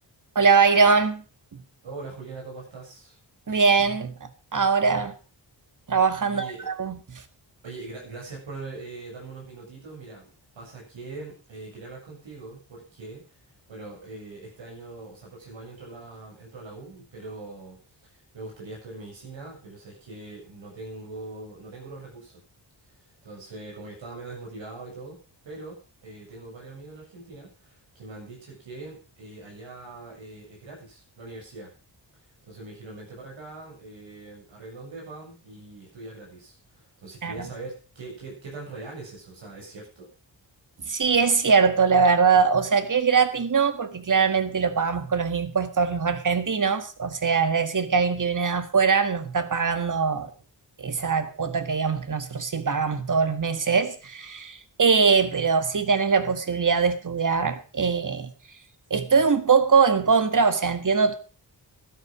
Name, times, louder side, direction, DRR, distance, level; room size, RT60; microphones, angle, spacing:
voice 1, 0.4-1.2 3.5-5.1 5.9-7.2 37.2-37.3 40.9-50.3 50.8-58.3 58.9-61.1, right 5 dB, 45° right, 1.8 m, -22 dB
voice 2, 1.8-3.2 6.3-6.7 7.6-10.3 10.6-13.4 13.7-17.8 18.1-22.4 22.8-31.7 32.2-40.1, right 3 dB, 85° right, 7.5 m, -42 dB
12.5 x 10.5 x 6.2 m
wide cardioid pair, 100°, 45 cm